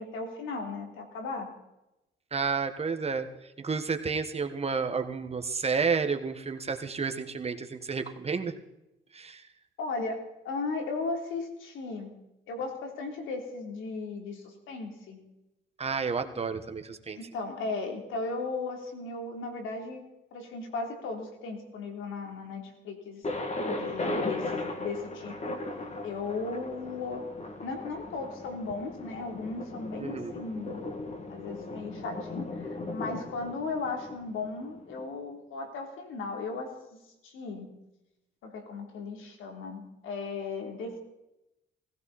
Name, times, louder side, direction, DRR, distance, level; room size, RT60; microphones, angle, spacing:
voice 1, 0.0-1.5 9.8-12.1 12.5-15.2 17.1-20.0 20.3-23.2 23.7-25.6 26.0-27.3 27.6-30.9 31.3-37.7 38.4-41.0, left 3 dB, 85° left, 3 dB, 3.4 m, -36 dB
voice 2, 2.3-3.3 3.6-8.5 9.1-9.4 15.8-17.2 30.0-30.3, right 5 dB, 30° right, 6 dB, 1.5 m, -31 dB
Thunder, 23.2-35.0, left 2 dB, 35° left, 2.2 m, -37 dB
18.5 x 16.5 x 4.3 m, 0.92 s
cardioid pair, 90°, 20 cm